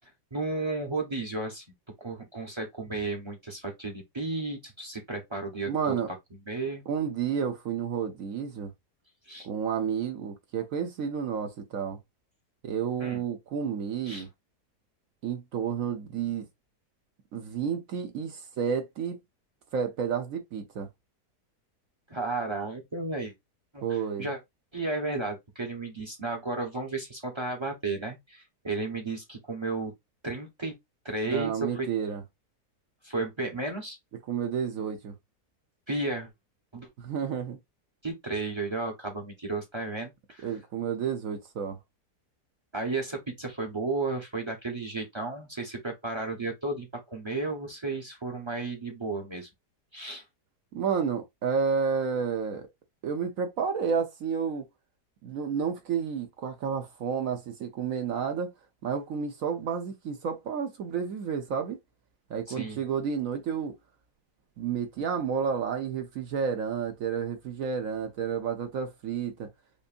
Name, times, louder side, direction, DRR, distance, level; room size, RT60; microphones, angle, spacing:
voice 1, 0.3-1.6 2.0-6.0 6.5-6.8 9.3-9.5 13.0-13.2 14.0-14.2 22.1-23.3 23.7-24.4 24.7-29.9 30.2-30.7 31.0-31.9 33.0-34.0 35.9-36.3 36.7-36.9 38.0-40.5 42.7-49.5 49.9-50.2 62.5-62.8, right 3 dB, 20° right, 0.9 m, -33 dB
voice 2, 5.6-6.1 6.9-8.7 9.4-12.0 12.6-14.3 15.2-16.5 17.3-19.2 19.7-20.9 23.8-24.3 31.3-32.2 34.3-35.1 37.0-37.6 40.4-41.8 50.7-52.7 53.0-54.6 55.2-58.5 58.8-61.8 62.3-63.7 64.6-69.5, right 6 dB, 60° right, 1.0 m, -31 dB
5.3 x 2.6 x 2.5 m
omnidirectional pair, 1.8 m